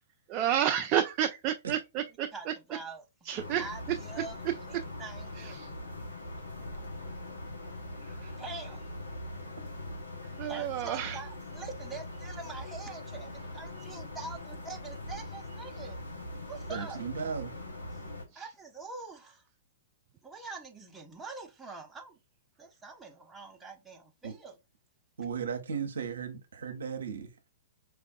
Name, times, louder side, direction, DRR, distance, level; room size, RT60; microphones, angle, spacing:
voice 1, 0.3-2.3 3.3-3.6 5.5-5.7 8.2-8.3 10.4-11.2 18.3-18.4, right 10 dB, 35° right, 0.3 m, -30 dB
voice 2, 2.3-3.1 3.6-5.8 8.4-8.9 10.5-16.0 16.5-17.0 18.3-19.4 20.2-22.2 22.6-24.5, right 3 dB, 10° right, 0.8 m, -44 dB
sound 1, 3.4-18.2, left 1 dB, 85° left, 0.9 m, -42 dB
voice 3, 16.7-17.5 24.2-24.3 25.2-27.3, right 6 dB, 70° right, 0.7 m, -36 dB
4.5 x 2.5 x 2.3 m
figure-of-eight pair, 110°, 0 cm